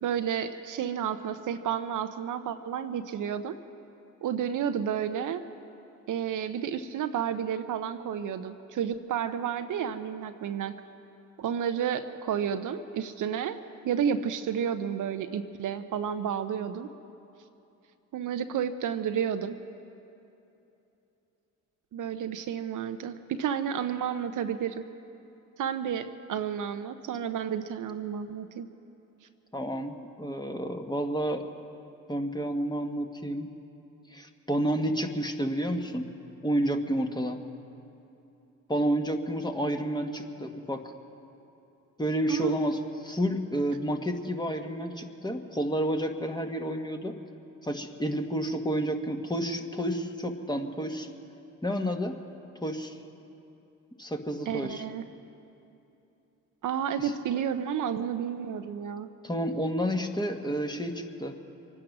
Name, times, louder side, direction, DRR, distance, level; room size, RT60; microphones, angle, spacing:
voice 1, 0.0-3.6 4.2-5.4 6.1-10.7 11.4-13.6 13.8-16.9 18.1-19.6 21.9-24.8 25.6-28.7 42.3-42.6 54.5-55.0 56.6-59.1, right 8 dB, 65° right, 9 dB, 0.8 m, -31 dB
voice 2, 29.5-31.4 32.1-33.5 34.1-36.1 36.4-37.4 38.7-40.9 42.0-47.2 47.6-51.1 51.6-52.2 52.6-53.0 54.0-54.8 57.0-57.1 59.2-61.3, right 1 dB, 10° left, 4 dB, 1.5 m, -30 dB
24.0 x 9.9 x 6.1 m, 2.9 s
supercardioid pair, 55°, 33 cm